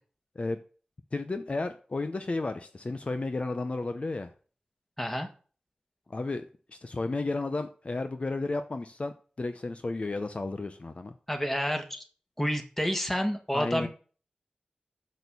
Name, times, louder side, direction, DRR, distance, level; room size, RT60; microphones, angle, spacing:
voice 1, 1.1-4.3 6.1-6.4 6.7-11.1 13.5-13.9, left 3 dB, 45° left, 8 dB, 0.7 m, -33 dB
voice 2, 5.0-5.3 11.3-12.0 12.4-13.9, equal, 10° left, 5 dB, 1.7 m, -29 dB
6.7 x 6.4 x 6.9 m, 0.39 s
wide cardioid pair, 75°, 3 cm